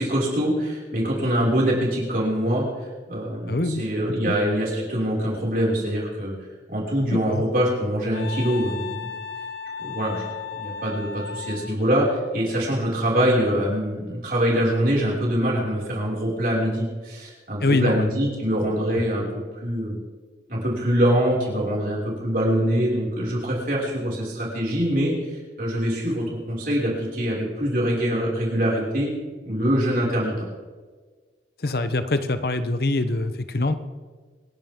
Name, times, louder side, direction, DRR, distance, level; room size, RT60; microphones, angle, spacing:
voice 1, 0.0-2.7 3.1-6.3 6.7-9.1 9.8-10.3 10.6-20.0 20.5-29.1 29.4-30.3, equal, 50° right, -4 dB, 5.7 m, -24 dB
voice 2, 3.5-3.8 4.3-4.4 7.1-7.4 17.6-18.1 31.6-33.7, left 2 dB, 55° left, 10 dB, 0.9 m, -24 dB
Wind instrument woodwind instrument, 8.1-11.8, left 6 dB, 80° left, 1.2 m, -35 dB
26.5 x 11.0 x 3.7 m, 1.4 s
head